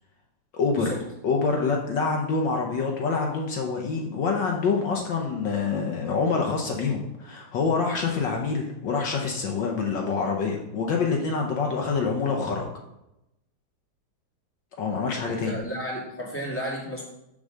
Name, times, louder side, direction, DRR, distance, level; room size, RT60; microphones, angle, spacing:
voice 1, 0.5-0.9 1.2-12.6 14.8-15.6, left 4 dB, 70° left, 1 dB, 1.5 m, -26 dB
voice 2, 15.3-17.0, equal, 5° left, -5 dB, 2.1 m, -33 dB
7.1 x 3.9 x 6.5 m, 0.88 s
omnidirectional pair, 2.2 m